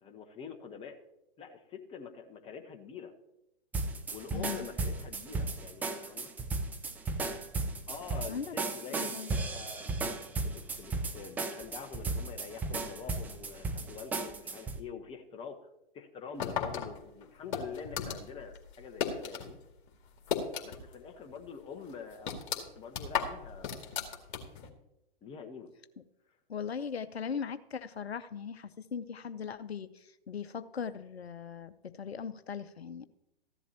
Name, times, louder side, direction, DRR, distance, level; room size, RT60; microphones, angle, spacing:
voice 1, 0.0-1.0 1.4-3.1 4.1-6.3 7.9-15.7 15.9-19.6 20.6-24.2 25.2-25.7, left 6 dB, 20° left, 5 dB, 1.1 m, -46 dB
sound 1, 3.7-14.8, right 3 dB, 5° right, 0.4 m, -35 dB
voice 2, 4.3-4.7 8.3-8.5 8.9-9.4 26.5-33.1, left 6 dB, 85° left, 12 dB, 0.7 m, -39 dB
sound 2, 16.4-19.5 19.8-21.0 21.3-21.4 21.9-24.7, left 7 dB, 55° left, 2.1 m, -35 dB
14.5 x 11.0 x 2.9 m, 0.87 s
figure-of-eight pair, 120°, 31 cm